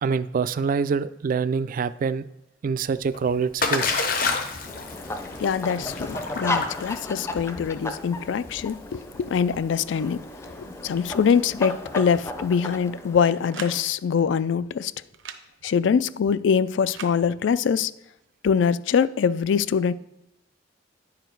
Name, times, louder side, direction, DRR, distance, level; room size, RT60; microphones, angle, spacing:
voice 1, 0.0-2.3 2.6-4.0, right 5 dB, 45° right, 0.3 m, -25 dB
Splash splatter, 2.9-12.8, left 4 dB, 50° left, 1.0 m, -31 dB
sound 1, 4.7-13.8, left 2 dB, 15° left, 0.5 m, -35 dB
voice 2, 5.4-14.9 15.6-17.9 18.4-19.9, left 6 dB, 70° left, 0.3 m, -23 dB
sound 2, 13.2-13.8 15.1-15.4 16.9-17.2, right 7 dB, 85° right, 0.7 m, -38 dB
9.8 x 5.0 x 4.5 m
head